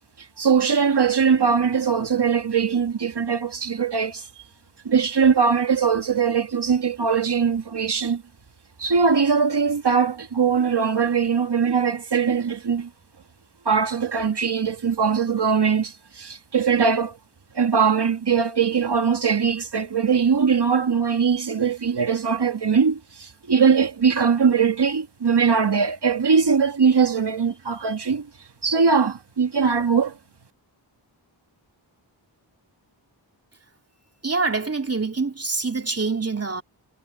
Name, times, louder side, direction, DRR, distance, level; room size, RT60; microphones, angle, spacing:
voice 1, 0.4-4.3 4.9-8.2 8.8-12.9 13.7-17.2 17.5-28.3 28.6-30.2, right 6 dB, 60° right, 1.9 m, -21 dB
voice 2, 34.2-36.6, right 4 dB, 30° right, 2.8 m, -25 dB
wide cardioid pair, 90°, 45 cm